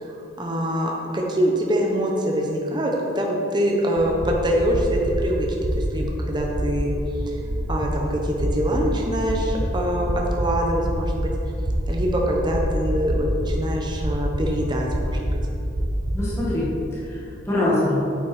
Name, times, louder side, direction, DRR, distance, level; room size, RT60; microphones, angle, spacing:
voice 1, 0.0-5.5 5.7-6.9 7.3-7.4 7.7-11.3 11.9-15.2, equal, 20° right, -1 dB, 1.0 m, -24 dB
sound 1, 4.0-16.4, equal, 50° right, 1.1 m, -27 dB
voice 2, 16.1-18.0, left 1 dB, 15° left, -9 dB, 1.6 m, -24 dB
8.7 x 8.5 x 4.3 m, 2.7 s
head